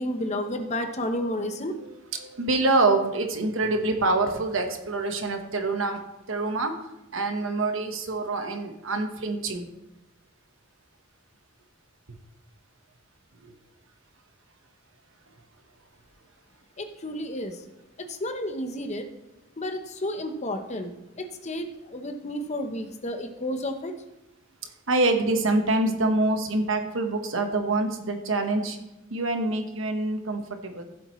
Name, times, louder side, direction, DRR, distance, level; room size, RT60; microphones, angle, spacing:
voice 1, 0.0-1.8 16.8-17.6 18.1-19.1 19.6-20.9 21.2-23.9, left 1 dB, 35° left, 7 dB, 0.9 m, -31 dB
voice 2, 2.2-6.0 6.3-6.7 7.1-9.7 13.4-13.5 24.9-28.8 29.1-30.8, right 2 dB, 70° right, 5 dB, 1.2 m, -26 dB
15.0 x 7.7 x 3.1 m, 0.91 s
head